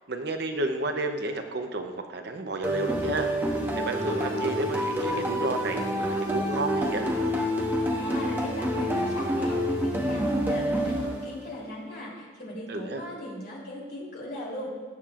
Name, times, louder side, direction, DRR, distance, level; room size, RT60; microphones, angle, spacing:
voice 1, 0.1-3.5 3.8-7.1 12.7-13.0, right 2 dB, 55° right, 5 dB, 0.7 m, -31 dB
sound 1, 2.6-11.6, equal, 10° right, 1.1 m, -28 dB
voice 2, 7.9-14.7, left 1 dB, 50° left, -4 dB, 3.2 m, -38 dB
19.0 x 7.4 x 2.5 m, 1.4 s
head